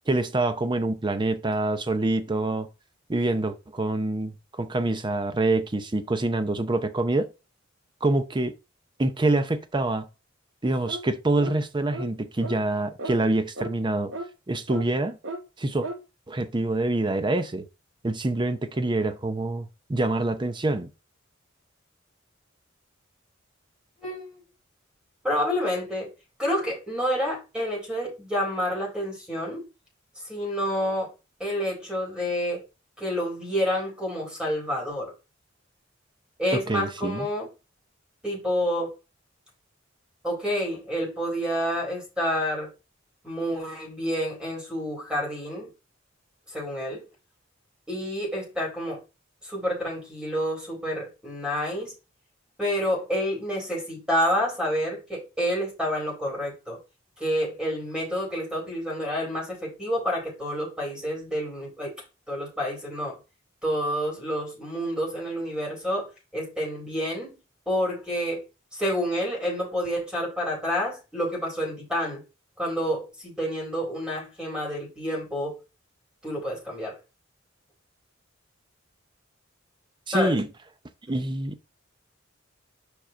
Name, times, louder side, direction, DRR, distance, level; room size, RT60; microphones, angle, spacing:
voice 1, 0.1-2.7 3.1-7.3 8.0-8.5 9.0-10.1 10.6-14.1 14.5-15.2 15.6-15.9 16.3-17.6 18.0-20.9 36.5-37.3 80.1-80.5 81.1-81.6, right 2 dB, 25° right, 0.6 m, -26 dB
sound 1, 10.9-11.1 11.4-11.6 11.9-12.1 12.4-12.6 13.0-13.2 13.6-13.7 14.1-14.3 14.7-14.8 15.2-15.4 15.8-16.0, right 2 dB, 65° right, 0.9 m, -35 dB
voice 2, 24.0-24.4 25.2-26.1 26.4-29.6 30.3-31.1 31.4-32.6 33.0-35.1 36.4-37.5 38.2-38.9 40.2-42.7 43.2-45.7 46.5-47.0 47.9-49.0 49.4-51.9 52.6-56.8 57.2-61.9 62.3-63.1 63.6-67.3 67.7-68.4 68.7-72.2 72.6-75.6 76.2-76.9 80.1-80.4, equal, 5° right, 4.1 m, -28 dB
5.3 x 5.0 x 4.5 m
head